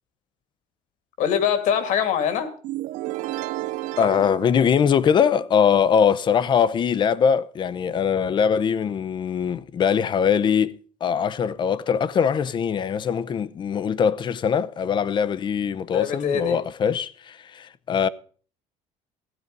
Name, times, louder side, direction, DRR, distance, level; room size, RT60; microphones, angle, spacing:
voice 1, 1.2-2.5 15.9-16.6, left 8 dB, 70° left, 2.4 m, -23 dB
sound 1, 2.6-5.5, right 16 dB, 75° right, 0.5 m, -32 dB
voice 2, 4.0-18.1, left 7 dB, 35° left, 0.7 m, -22 dB
16.0 x 9.5 x 5.3 m
cardioid pair, 130°, 13 cm